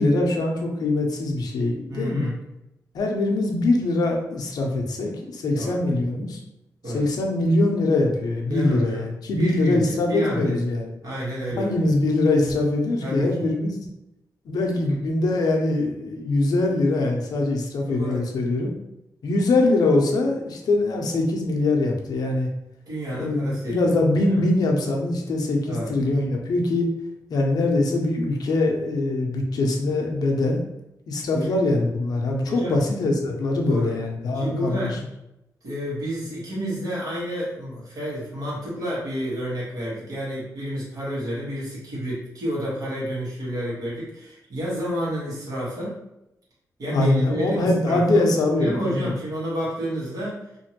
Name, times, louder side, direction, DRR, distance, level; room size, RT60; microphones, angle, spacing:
voice 1, 0.0-2.3 2.9-6.4 6.9-10.9 11.5-13.8 14.5-18.7 19.2-22.5 23.1-26.9 27.3-30.6 31.1-35.0 46.9-49.1, left 2 dB, 75° left, 1 dB, 0.6 m, -23 dB
voice 2, 1.9-2.3 5.5-5.8 6.8-7.0 8.5-9.0 9.3-10.6 11.0-11.9 13.0-13.5 17.9-18.2 22.9-24.0 24.3-24.4 25.7-25.9 31.3-31.5 32.5-32.8 33.6-33.9 34.3-35.0 35.6-45.9 46.8-48.3 48.6-50.4, equal, 70° right, -7 dB, 1.5 m, -30 dB
2.9 x 2.6 x 2.9 m, 0.87 s
wide cardioid pair, 165°, 7 cm